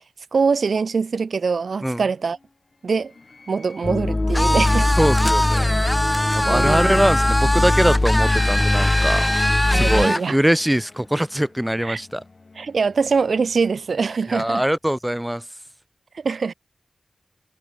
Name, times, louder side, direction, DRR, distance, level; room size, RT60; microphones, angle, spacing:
voice 1, 0.3-2.4 2.8-3.1 3.5-4.9 6.5-7.0 9.7-10.4 11.8-12.0 12.6-14.6 16.1-16.5, right 5 dB, 85° right, 1.0 m, -23 dB
sound 1, 1.0-14.8, left 3 dB, 55° left, 7.4 m, -47 dB
sound 2, 3.8-10.1, left 2 dB, 30° left, 0.4 m, -21 dB
sound 3, 4.3-10.3, equal, 10° left, 1.8 m, -23 dB
voice 2, 5.0-5.7 6.3-9.2 9.7-12.2 14.3-15.4, equal, 5° right, 1.9 m, -22 dB
wide cardioid pair, 60°, 0 cm